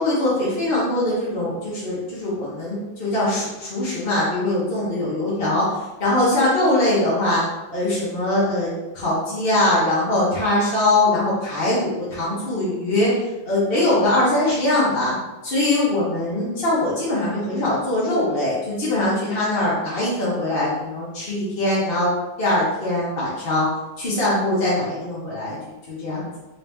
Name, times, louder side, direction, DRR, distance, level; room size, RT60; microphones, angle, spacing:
voice 1, 0.0-7.4 7.7-13.1 13.5-15.1 15.4-22.1 22.4-23.7 24.0-25.5 25.9-26.4, left 1 dB, 40° left, -8 dB, 0.8 m, -22 dB
3.8 x 2.9 x 3.5 m, 1.1 s
omnidirectional pair, 2.4 m